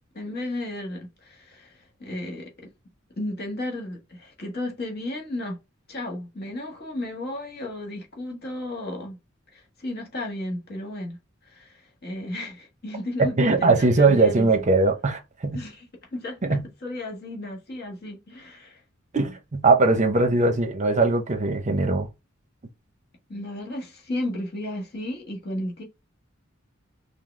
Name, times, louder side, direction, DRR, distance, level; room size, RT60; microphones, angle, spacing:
voice 1, 0.1-2.7 3.2-5.6 5.9-9.2 9.5-11.2 11.4-14.5 15.5-15.8 16.1-18.8 20.2-20.3 23.3-25.8, left 1 dB, 50° left, 1.4 m, -34 dB
voice 2, 13.2-15.6 16.4-16.7 19.1-22.1, right 3 dB, 35° right, 0.7 m, -20 dB
5.8 x 2.0 x 3.1 m
head